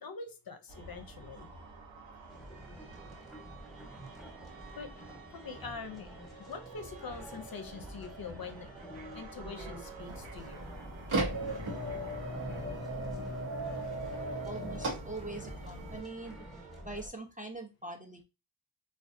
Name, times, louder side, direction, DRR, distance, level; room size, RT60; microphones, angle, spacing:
voice 1, 0.0-1.5 4.8-6.1 6.4-8.7 9.1-10.7 15.9-16.0, left 5 dB, 50° left, 7 dB, 0.5 m, -44 dB
sound 1, 0.7-16.8, right 3 dB, 70° right, 0.7 m, -50 dB
sound 2, 2.3-17.1, equal, ahead, 0.8 m, -49 dB
sound 3, 10.0-16.0, right 1 dB, 90° right, 0.9 m, -37 dB
voice 2, 14.4-16.4 16.8-18.2, right 2 dB, 20° right, 2 dB, 0.3 m, -43 dB
2.5 x 2.3 x 2.4 m, 0.28 s
cardioid pair, 50°, 47 cm